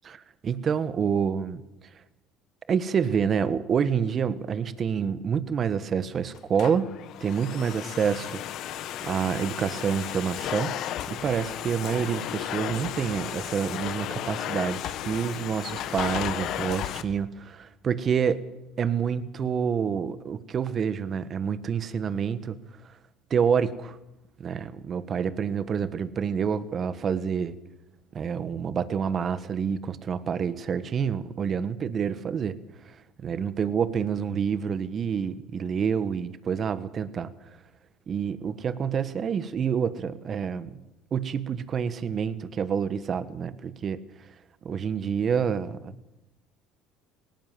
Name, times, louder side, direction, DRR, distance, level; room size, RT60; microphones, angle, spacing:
voice 1, 0.4-1.6 2.7-6.9 7.2-8.4 9.0-10.7 11.1-18.4 18.8-22.6 23.3-24.0 24.4-27.5 28.1-32.5 32.8-33.0 33.2-37.3 38.1-40.8 41.1-44.0 44.6-45.9, right 7 dB, 40° right, 14 dB, 1.5 m, -28 dB
Domestic sounds home sounds, 6.3-17.0, left 11 dB, 65° left, 1.4 m, -34 dB
18.5 x 18.5 x 7.6 m, 0.95 s
supercardioid pair, 90°, 0 cm